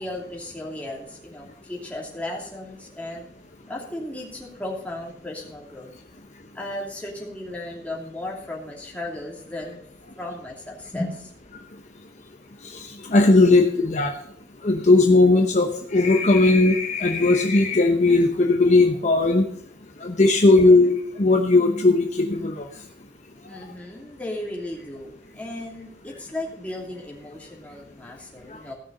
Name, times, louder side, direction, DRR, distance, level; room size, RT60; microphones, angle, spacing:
voice 1, 0.0-3.3 3.7-5.9 6.5-9.8 10.2-11.3 23.5-28.7, left 1 dB, 10° left, -2 dB, 2.6 m, -35 dB
voice 2, 12.7-14.1 14.6-19.5 20.0-22.7, left 2 dB, 40° left, 3 dB, 0.9 m, -18 dB
16.5 x 6.3 x 5.3 m, 0.70 s
head